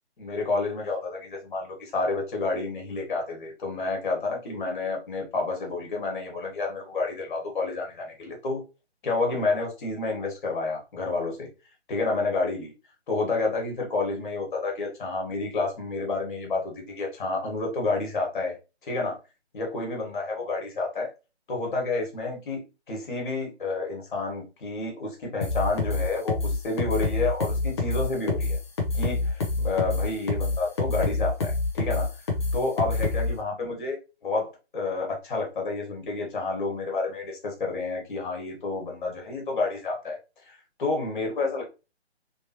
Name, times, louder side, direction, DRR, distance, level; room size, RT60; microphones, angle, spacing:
voice 1, 0.2-8.6 9.0-11.5 11.9-12.7 13.1-18.5 18.8-19.2 19.5-21.1 21.5-22.6 22.9-28.6 28.9-32.1 32.5-34.0 34.2-40.2 40.4-41.6, left 3 dB, 45° left, 0 dB, 1.7 m, -29 dB
sound 1, 25.4-33.3, left 3 dB, 25° left, 0.7 m, -26 dB
3.4 x 2.9 x 2.9 m, 0.29 s
hypercardioid pair, 155°, 34 cm